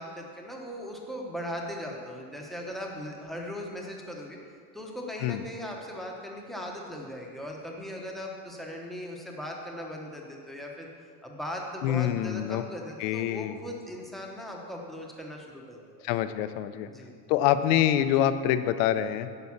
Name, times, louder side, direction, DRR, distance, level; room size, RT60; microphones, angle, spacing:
voice 1, 0.0-4.4 4.7-10.9 11.2-16.0 16.8-17.1, equal, ahead, -1 dB, 0.9 m, -39 dB
voice 2, 11.8-12.6 13.0-13.6 16.0-16.9 17.3-19.3, left 11 dB, 60° left, 12 dB, 0.7 m, -25 dB
10.5 x 5.5 x 7.1 m, 2.1 s
cardioid pair, 160°, 42 cm